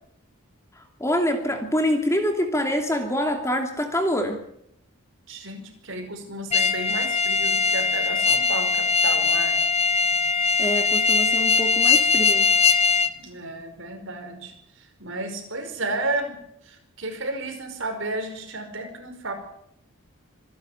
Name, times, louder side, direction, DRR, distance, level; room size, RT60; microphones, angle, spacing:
voice 1, 0.7-4.4 10.6-12.5, equal, 15° left, 4 dB, 2.6 m, -25 dB
voice 2, 5.3-9.6 13.2-16.4 16.6-19.3, right 2 dB, 60° right, 5 dB, 5.1 m, -32 dB
sound 1, 6.5-13.1, left 5 dB, 30° left, 1.0 m, -21 dB
26.0 x 11.0 x 9.1 m, 0.74 s
head